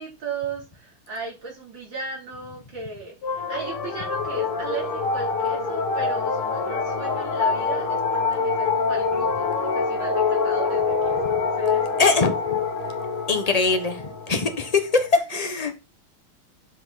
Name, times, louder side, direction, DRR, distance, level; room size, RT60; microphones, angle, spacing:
voice 1, 0.0-12.3 15.3-15.4, right 4 dB, 55° right, 4.1 m, -36 dB
sound 1, 3.2-15.1, left 4 dB, 75° left, 2.4 m, -25 dB
voice 2, 12.0-12.3 13.3-15.8, left 4 dB, 30° left, 0.7 m, -22 dB
9.3 x 5.3 x 4.1 m
omnidirectional pair, 2.4 m